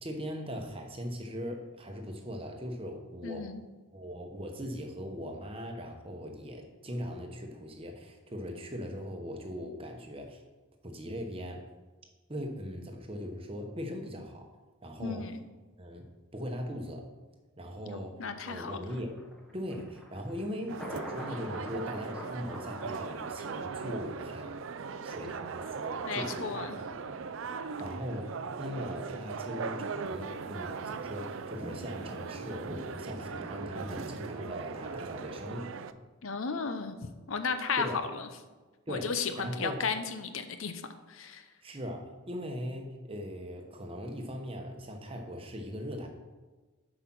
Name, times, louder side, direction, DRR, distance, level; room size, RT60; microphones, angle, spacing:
voice 1, 0.0-3.5 3.9-10.4 10.8-11.6 12.3-14.5 14.8-15.3 15.8-16.1 16.3-17.1 17.6-19.2 19.5-24.7 25.0-27.2 27.8-28.3 28.6-35.7 37.8-38.0 38.9-39.9 41.6-46.1, equal, 25° right, 3 dB, 1.0 m, -40 dB
voice 2, 3.2-3.6 15.0-15.4 17.9-18.8 26.0-26.8 36.2-36.9 37.3-37.9 38.9-40.8 41.1-41.4, left 5 dB, 70° left, 9 dB, 0.7 m, -34 dB
Thunder, 18.9-36.0 36.4-36.5, equal, ahead, 1.0 m, -48 dB
sound 1, 20.7-35.9, right 5 dB, 65° right, 0.4 m, -39 dB
8.0 x 5.0 x 6.0 m, 1.3 s
head